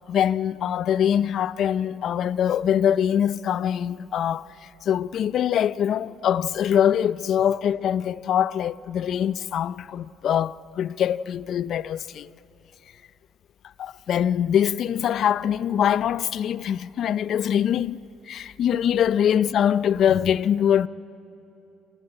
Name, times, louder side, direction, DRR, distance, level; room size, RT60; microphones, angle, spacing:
voice 1, 0.1-4.5 4.8-12.3 13.8-18.0 18.3-20.9, left 9 dB, 60° left, 0.5 m, -23 dB
30.0 x 13.0 x 8.8 m
cardioid pair, 110°, 0 cm